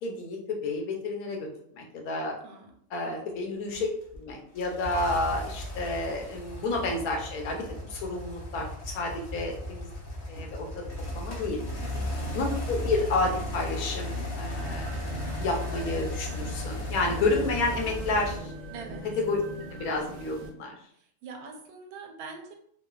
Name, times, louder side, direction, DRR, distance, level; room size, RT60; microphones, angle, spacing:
voice 1, 0.0-1.5 1.7-2.3 2.9-3.9 4.1-9.9 10.3-10.8 11.1-11.6 12.3-15.0 15.4-18.5 19.2-19.4 19.7-20.8, left 2 dB, 80° left, 0 dB, 1.1 m, -30 dB
voice 2, 2.4-2.7 3.1-3.2 11.8-12.4 18.7-19.1 20.9-22.6, right 4 dB, 90° right, 3 dB, 1.1 m, -44 dB
sound 1, 3.7-18.4, left 1 dB, 55° left, 0.9 m, -36 dB
sound 2, 14.6-20.5, right 1 dB, 65° right, 0.7 m, -41 dB
3.0 x 2.2 x 2.2 m, 0.66 s
omnidirectional pair, 1.5 m